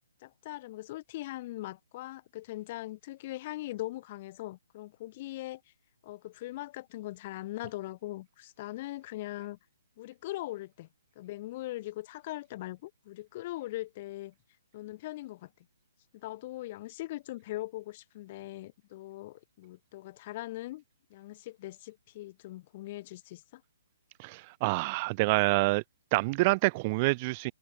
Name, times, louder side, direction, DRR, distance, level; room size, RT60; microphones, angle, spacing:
voice 1, 0.2-5.6 6.0-9.6 10.0-10.9 11.2-14.3 14.7-15.5 16.1-20.8 21.1-23.6, left 17 dB, 25° left, 2.0 m, -40 dB
voice 2, 24.2-25.8 26.1-27.5, right 25 dB, 25° right, 0.4 m, -27 dB
hypercardioid pair, 170°, 0 cm